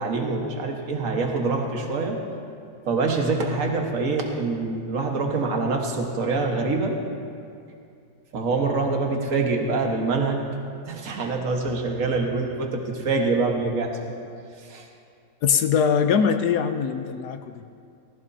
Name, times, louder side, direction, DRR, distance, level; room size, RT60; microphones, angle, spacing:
voice 1, 0.0-2.2 2.9-6.9 8.3-10.4 10.9-14.1 14.7-14.8, right 3 dB, 50° right, 1 dB, 1.7 m, -25 dB
voice 2, 15.4-17.7, left 7 dB, 70° left, 8 dB, 1.1 m, -22 dB
19.0 x 16.0 x 2.8 m, 2.4 s
omnidirectional pair, 2.0 m